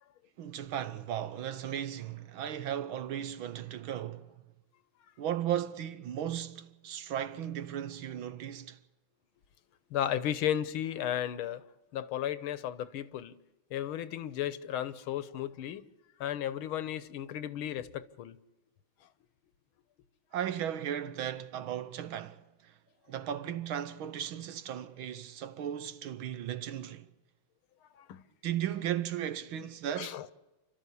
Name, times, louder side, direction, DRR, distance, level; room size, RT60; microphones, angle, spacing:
voice 1, 0.4-4.3 5.2-8.8 20.3-22.7 23.1-27.1 28.4-30.2, right 10 dB, 70° right, 1.8 m, -36 dB
voice 2, 9.9-11.6 11.9-13.4 13.7-15.8 16.2-18.4 27.9-28.2 30.0-30.3, left 11 dB, 75° left, 1.7 m, -34 dB
29.5 x 12.5 x 8.4 m
omnidirectional pair, 2.4 m